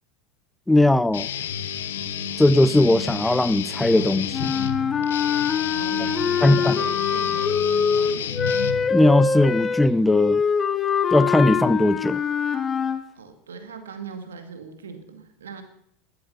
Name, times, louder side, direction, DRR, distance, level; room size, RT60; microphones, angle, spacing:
voice 1, 0.7-1.3 2.4-4.5 6.4-6.8 8.9-10.4 11.1-12.2, left 1 dB, 5° left, 0.5 m, -19 dB
Guitar, 1.1-9.2, left 9 dB, 80° left, 1.0 m, -31 dB
Speech synthesizer, 1.9-10.2, right 3 dB, 60° right, 5.0 m, -49 dB
sound 1, 4.3-13.0, left 6 dB, 30° left, 1.4 m, -23 dB
voice 2, 5.6-7.9 13.2-15.6, right 5 dB, 90° right, 2.1 m, -39 dB
14.0 x 12.5 x 5.6 m
hypercardioid pair, 90°, 0 cm